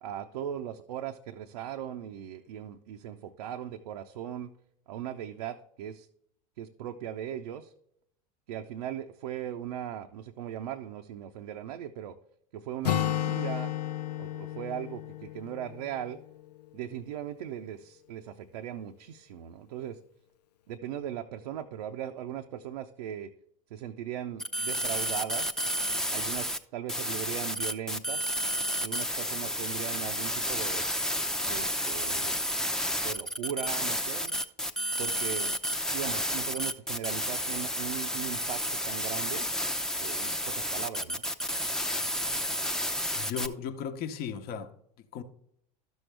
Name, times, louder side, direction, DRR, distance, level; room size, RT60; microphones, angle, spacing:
voice 1, 0.0-4.5 4.9-6.1 6.6-7.7 8.5-12.2 12.5-13.8 14.2-16.2 16.7-20.0 20.7-23.3 23.7-25.6 26.1-28.4 28.8-30.9 31.4-32.3 33.0-34.4 35.0-35.5 35.9-39.5 40.0-41.2, right 10 dB, 75° right, 0.6 m, -38 dB
Acoustic guitar, 12.8-16.6, left 12 dB, 90° left, 0.4 m, -33 dB
sound 1, 24.4-26.6 26.9-43.5, equal, 5° left, 0.6 m, -31 dB
voice 2, 43.2-44.7 45.1-45.2, left 7 dB, 50° left, 1.0 m, -36 dB
12.0 x 6.3 x 3.3 m
hypercardioid pair, 85°, 20 cm